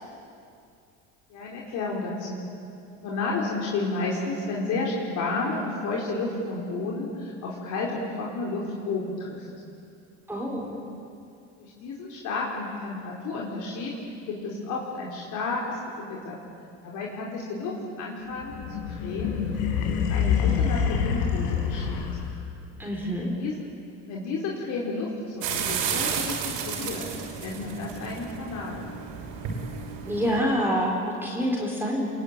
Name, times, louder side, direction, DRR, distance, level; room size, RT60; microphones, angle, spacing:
voice 1, 1.3-2.5 3.0-9.5 11.6-13.9 14.3-16.4 16.8-19.3 19.9-22.0 23.2-23.6 24.0-29.0, left 3 dB, 60° left, -3 dB, 4.7 m, -32 dB
voice 2, 10.3-10.8 22.8-23.3 30.1-32.1, equal, 5° right, -2 dB, 4.5 m, -27 dB
sound 1, 18.4-22.6, left 7 dB, 75° left, 4.7 m, -26 dB
sound 2, 25.4-30.4, right 7 dB, 70° right, 6.1 m, -32 dB
29.0 x 22.5 x 9.0 m, 2.5 s
supercardioid pair, 110°, 33 cm